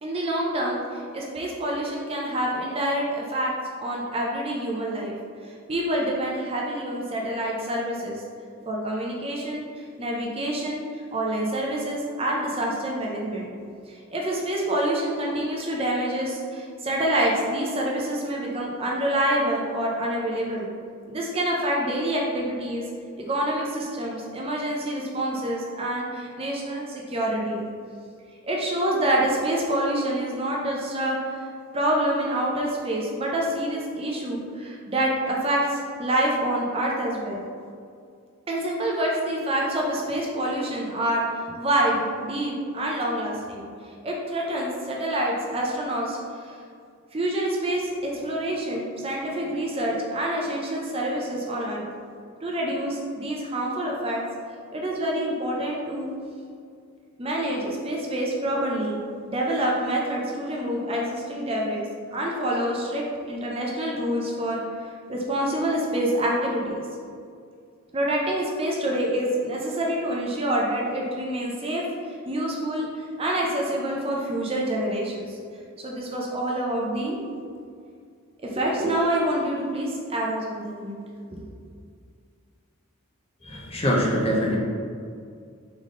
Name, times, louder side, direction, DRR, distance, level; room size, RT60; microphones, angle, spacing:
voice 1, 0.0-3.5 3.8-5.1 5.4-8.2 8.7-13.5 13.9-20.7 21.1-22.8 23.2-27.7 28.4-31.5 31.7-37.4 38.5-43.7 44.0-46.5 47.1-51.8 52.4-54.2 54.7-56.1 57.2-59.0 59.3-61.9 62.1-64.6 65.1-66.8 67.9-75.4 75.8-77.2 78.4-81.0 81.3-81.4, right 1 dB, 25° right, -2 dB, 0.5 m, -27 dB
voice 2, 83.4-84.6, equal, 25° left, -2 dB, 0.6 m, -23 dB
3.9 x 3.5 x 3.7 m, 2.3 s
head